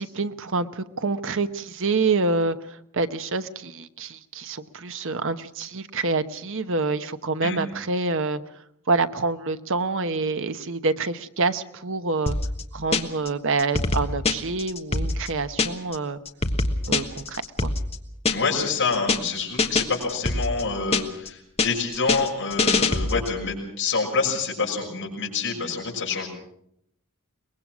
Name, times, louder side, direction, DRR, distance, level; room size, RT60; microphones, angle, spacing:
voice 1, 0.0-8.4 8.9-12.4 12.7-16.2 16.9-17.7, right 3 dB, 60° right, 10 dB, 1.0 m, -27 dB
sound 1, 12.3-13.3 13.6-16.0 16.3-18.6 18.9-19.3 19.6-21.3 21.6-23.4, left 3 dB, 30° left, 1.3 m, -25 dB
voice 2, 18.3-26.3, left 4 dB, 55° left, -2 dB, 6.5 m, -27 dB
23.0 x 20.5 x 6.1 m, 0.73 s
head